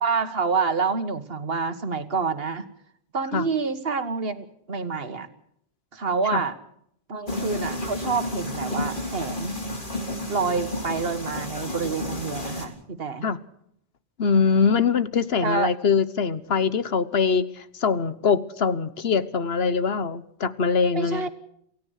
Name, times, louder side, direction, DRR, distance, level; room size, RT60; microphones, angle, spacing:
voice 1, 0.0-2.7 3.1-5.3 5.9-6.5 7.1-9.5 10.3-13.3 15.4-15.7 21.0-21.3, right 4 dB, 70° right, 11 dB, 1.7 m, -27 dB
sound 1, 7.3-12.7, left 1 dB, 55° left, 3.6 m, -31 dB
voice 2, 14.2-21.3, left 5 dB, 75° left, 14 dB, 1.3 m, -23 dB
28.5 x 16.5 x 6.5 m, 0.71 s
omnidirectional pair, 1.0 m